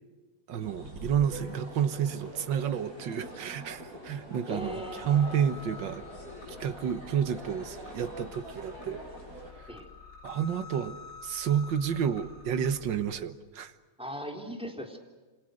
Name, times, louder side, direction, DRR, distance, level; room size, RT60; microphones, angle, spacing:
voice 1, 0.5-6.0 6.6-9.0 10.2-13.7, right 8 dB, 65° right, 10 dB, 1.9 m, -30 dB
sound 1, 0.6-9.5, equal, 45° right, 8.4 m, -45 dB
voice 2, 4.5-5.2 9.7-9.9 14.0-15.0, equal, 5° right, 2 dB, 3.5 m, -39 dB
sound 2, 4.6-13.1, left 5 dB, 60° left, 8.7 m, -49 dB
28.0 x 26.5 x 6.5 m, 1.4 s
omnidirectional pair, 2.2 m